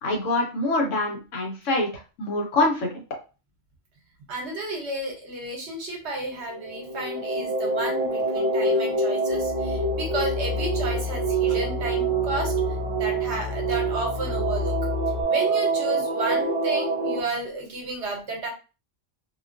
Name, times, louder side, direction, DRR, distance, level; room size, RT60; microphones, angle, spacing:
voice 1, 0.0-3.0, left 2 dB, 80° left, 1 dB, 1.2 m, -25 dB
voice 2, 4.3-12.5 12.9-14.7 15.3-18.5, right 2 dB, 65° right, 2 dB, 1.1 m, -32 dB
sound 1, 6.5-17.2, right 3 dB, 35° right, 0.6 m, -26 dB
sound 2, 9.3-15.2, left 6 dB, 60° left, 0.4 m, -31 dB
2.7 x 2.3 x 2.4 m, 0.32 s
omnidirectional pair, 1.3 m